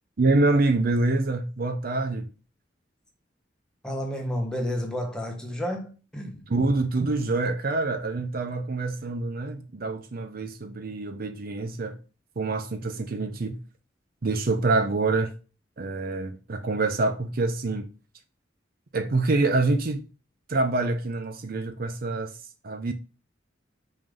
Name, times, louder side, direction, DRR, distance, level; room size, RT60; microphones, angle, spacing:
voice 1, 0.2-2.3 6.5-12.0 12.4-13.6 14.2-15.3 15.8-17.9 18.9-20.0 20.5-22.3 22.6-22.9, right 3 dB, 55° right, 0.6 m, -26 dB
voice 2, 3.8-6.5, equal, 5° left, 1.3 m, -31 dB
5.6 x 3.6 x 5.2 m
head